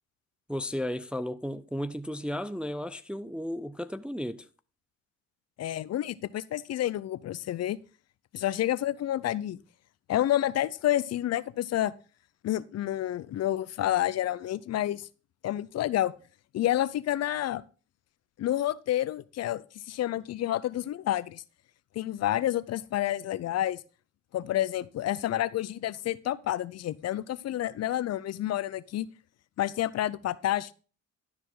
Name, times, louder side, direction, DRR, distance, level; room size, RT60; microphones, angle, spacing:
voice 1, 0.5-4.5, equal, 5° right, 0.3 m, -34 dB
voice 2, 5.6-7.8 8.3-9.6 10.1-11.9 12.4-15.1 15.4-16.1 16.5-17.6 18.4-21.4 21.9-23.8 24.3-29.1 29.6-30.7, left 13 dB, 60° left, 0.5 m, -29 dB
12.0 x 4.8 x 3.8 m
cardioid pair, 90°, 30 cm